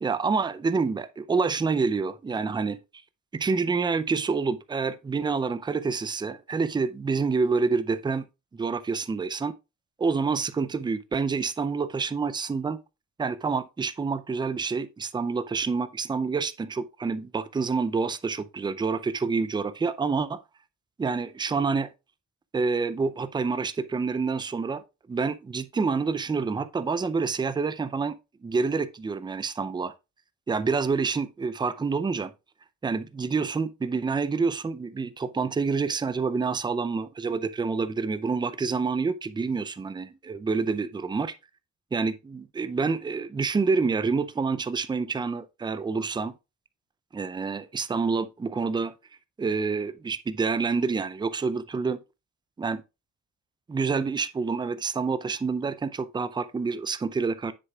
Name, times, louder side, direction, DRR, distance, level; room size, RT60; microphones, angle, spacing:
voice 1, 0.0-2.8 3.3-8.3 8.5-9.5 10.0-12.8 13.2-20.4 21.0-21.9 22.5-24.8 25.1-28.1 28.4-29.9 30.5-32.3 32.8-41.3 41.9-46.3 47.1-48.9 49.4-52.0 52.6-52.8 53.7-57.5, right 4 dB, 15° right, 0.5 m, -27 dB
7.6 x 6.5 x 2.3 m
cardioid pair, 90°, 30 cm